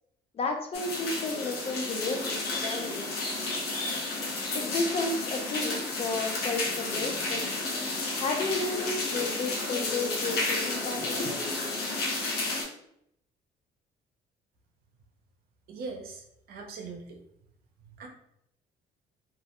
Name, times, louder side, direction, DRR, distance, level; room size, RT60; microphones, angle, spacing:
voice 1, 0.3-3.2 4.5-7.5 8.2-11.4, left 3 dB, 35° left, 3 dB, 0.4 m, -32 dB
sound 1, 0.7-12.6, left 2 dB, 70° left, 0.7 m, -32 dB
voice 2, 15.7-17.2 17.9-18.1, right 4 dB, 65° right, 2 dB, 0.6 m, -41 dB
2.3 x 2.0 x 2.9 m, 0.75 s
cardioid pair, 110°, 17 cm